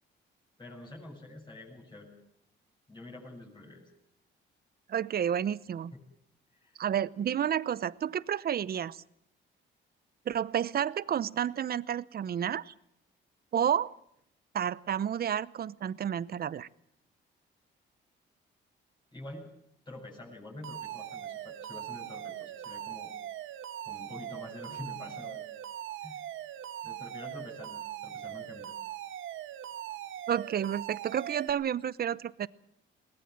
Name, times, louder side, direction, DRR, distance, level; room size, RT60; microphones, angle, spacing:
voice 1, 0.6-2.1 2.9-3.9 6.6-6.9 19.1-19.5 19.9-23.1 23.8-25.4 26.0-26.2 26.8-28.7, left 2 dB, 20° left, -3 dB, 7.5 m, -47 dB
voice 2, 4.9-5.9 6.8-9.0 10.3-12.7 13.5-14.0 14.5-16.7 30.3-32.5, right 9 dB, 50° right, 19 dB, 0.8 m, -30 dB
Alarm, 20.6-31.5, right 11 dB, 80° right, 1.5 m, -41 dB
21.5 x 19.0 x 7.6 m, 0.71 s
cardioid pair, 90°, 20 cm